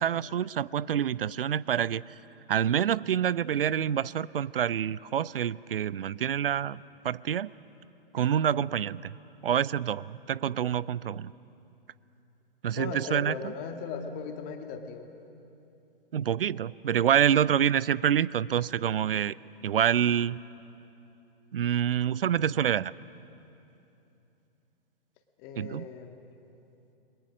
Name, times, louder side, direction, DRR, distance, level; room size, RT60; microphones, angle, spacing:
voice 1, 0.0-2.0 2.5-7.5 8.1-9.2 9.4-11.3 12.6-13.4 16.1-19.3 19.6-20.4 21.5-22.9 25.6-25.9, right 9 dB, 70° right, 21 dB, 0.5 m, -27 dB
voice 2, 12.8-15.1 25.4-26.2, left 5 dB, 30° left, 5 dB, 2.0 m, -38 dB
29.5 x 22.0 x 6.3 m, 2.8 s
figure-of-eight pair, 115°, 30 cm